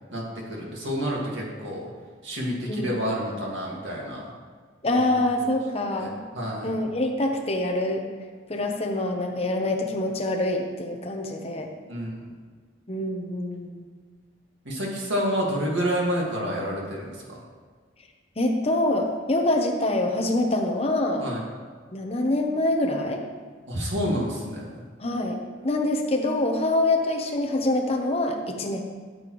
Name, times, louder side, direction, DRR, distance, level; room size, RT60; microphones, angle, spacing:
voice 1, 0.5-1.9 2.2-4.2 5.1-5.2 5.9-6.7 11.9-12.1 14.7-17.4 21.2-21.4 23.7-24.7, equal, 75° right, -3 dB, 2.1 m, -29 dB
voice 2, 4.8-6.2 6.6-8.0 8.5-11.7 12.9-13.8 18.4-21.3 21.9-23.2 25.0-28.8, left 1 dB, 30° left, 2 dB, 0.9 m, -25 dB
13.0 x 7.0 x 3.2 m, 1.6 s
head